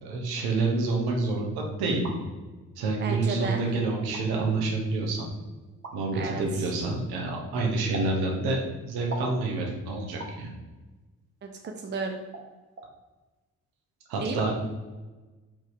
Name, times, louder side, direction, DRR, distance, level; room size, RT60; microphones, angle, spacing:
voice 1, 0.0-2.1 2.8-5.3 5.9-10.5 14.1-14.5, right 3 dB, 60° right, 0 dB, 1.4 m, -28 dB
sound 1, 1.8-2.2 3.1-3.2 4.0-4.2 5.8-6.0 7.9-8.1 9.1-9.4 10.2-10.4 11.6-11.8 12.3-12.5 12.8-12.9, right 3 dB, 90° right, 0.7 m, -39 dB
voice 2, 3.0-3.6 6.1-6.7 11.4-12.2 14.2-14.5, right 4 dB, 25° right, 4 dB, 0.7 m, -33 dB
5.4 x 3.6 x 5.0 m, 1.2 s
figure-of-eight pair, 40°, 43 cm